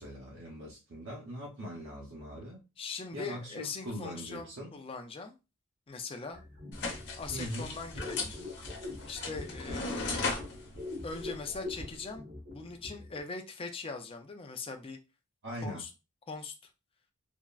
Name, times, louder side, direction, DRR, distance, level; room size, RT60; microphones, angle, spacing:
voice 1, 0.0-2.6 3.1-4.7 7.3-7.8 15.4-15.8, equal, 60° right, 0.7 m, -41 dB
voice 2, 2.8-5.3 5.9-6.4 7.2-8.3 9.0-10.4 11.0-15.0 15.6-15.9 16.3-16.6, left 4 dB, 25° left, 0.4 m, -41 dB
sound 1, 6.3-13.2, left 2 dB, 75° right, 1.3 m, -44 dB
sound 2, 6.7-12.0, left 3 dB, 55° left, 0.9 m, -38 dB
3.5 x 2.0 x 2.3 m
head